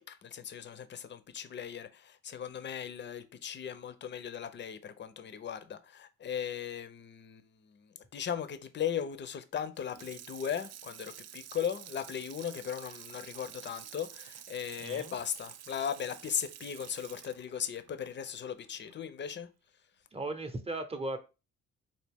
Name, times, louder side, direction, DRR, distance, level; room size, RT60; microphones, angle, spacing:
voice 1, 0.0-19.5, left 8 dB, 35° left, 0.6 m, -38 dB
Water tap faucet / Sink (filling or washing), 9.8-19.0 19.4-19.5, right 11 dB, 60° right, 0.4 m, -49 dB
voice 2, 14.8-15.2 20.1-21.2, right 2 dB, 20° right, 0.8 m, -37 dB
4.1 x 2.7 x 3.5 m
cardioid pair, 90°, 30 cm